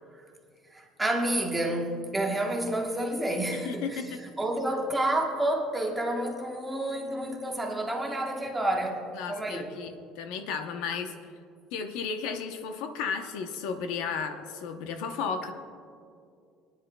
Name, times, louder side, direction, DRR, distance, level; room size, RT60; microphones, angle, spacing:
voice 1, 0.7-9.7, right 1 dB, 10° right, 0 dB, 1.1 m, -29 dB
voice 2, 3.5-4.2 9.1-11.1 11.7-15.5, left 6 dB, 75° left, 6 dB, 0.8 m, -34 dB
22.5 x 10.0 x 2.3 m, 2.4 s
cardioid pair, 165°, 0 cm